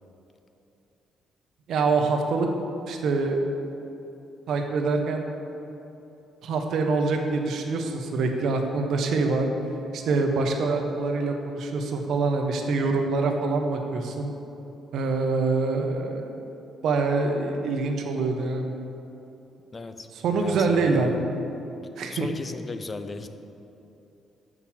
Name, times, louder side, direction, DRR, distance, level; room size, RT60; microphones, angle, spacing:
voice 1, 1.7-2.5 2.9-3.4 4.5-5.2 6.4-9.5 9.9-14.3 14.9-16.3 16.8-18.6 20.2-21.2 22.0-22.3, right 3 dB, 75° right, 3 dB, 1.0 m, -25 dB
voice 2, 19.7-20.1 20.3-21.2 22.1-23.3, left 3 dB, 30° left, 9 dB, 0.6 m, -36 dB
6.6 x 6.1 x 7.3 m, 2.9 s
cardioid pair, 90°, 0 cm